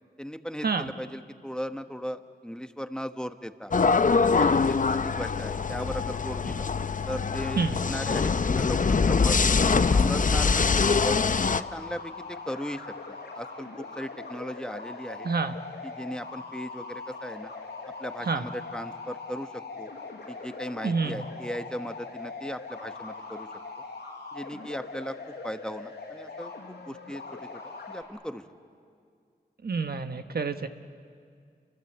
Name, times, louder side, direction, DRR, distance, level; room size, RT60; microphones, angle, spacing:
voice 1, 0.2-3.7 4.2-6.7 7.0-7.6 7.9-9.4 9.9-11.2 11.5-15.3 15.8-17.5 17.8-19.9 20.3-23.5 24.3-25.2 25.4-27.5 27.9-28.4, equal, 5° left, 8 dB, 1.2 m, -37 dB
sound 1, 3.7-11.6, left 5 dB, 50° left, 0.7 m, -23 dB
sound 2, 10.5-28.0, left 4 dB, 80° left, 5.4 m, -41 dB
voice 2, 20.8-21.2 29.6-30.7, right 4 dB, 65° right, 8 dB, 1.2 m, -28 dB
28.5 x 25.0 x 8.0 m, 2.2 s
wide cardioid pair, 60°, 18 cm